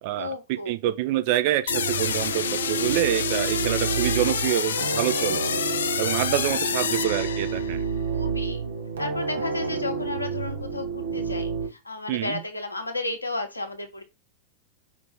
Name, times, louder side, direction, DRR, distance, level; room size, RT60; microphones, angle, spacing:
voice 1, 0.1-0.7 4.1-4.7 6.3-7.0 8.1-8.6 9.0-14.0, left 3 dB, 85° left, 0.9 m, -33 dB
voice 2, 0.7-5.4 6.0-7.8 12.1-12.4, right 14 dB, 50° right, 0.6 m, -26 dB
sound 1, 1.7-7.8, left 7 dB, 65° left, 0.4 m, -28 dB
sound 2, 1.7-11.7, right 5 dB, 65° right, 1.0 m, -29 dB
5.0 x 2.6 x 3.4 m
figure-of-eight pair, 90°, 0 cm